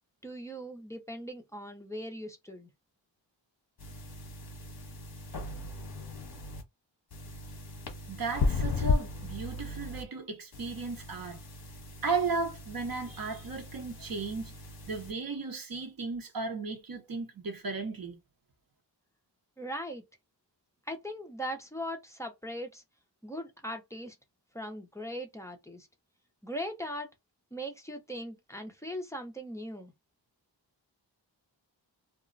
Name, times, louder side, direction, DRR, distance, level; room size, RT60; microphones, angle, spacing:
voice 1, 0.2-2.7 19.6-20.0 20.9-22.8 23.2-24.2 24.5-25.9 26.4-27.1 27.5-29.9, equal, 5° left, 0.4 m, -39 dB
sound 1, 3.8-6.6 7.1-10.0 10.5-15.1, left 3 dB, 50° left, 0.9 m, -36 dB
voice 2, 8.1-11.4 12.0-14.5 14.9-18.2, right 4 dB, 50° right, 0.8 m, -35 dB
2.4 x 2.0 x 3.7 m
wide cardioid pair, 175°, 45 cm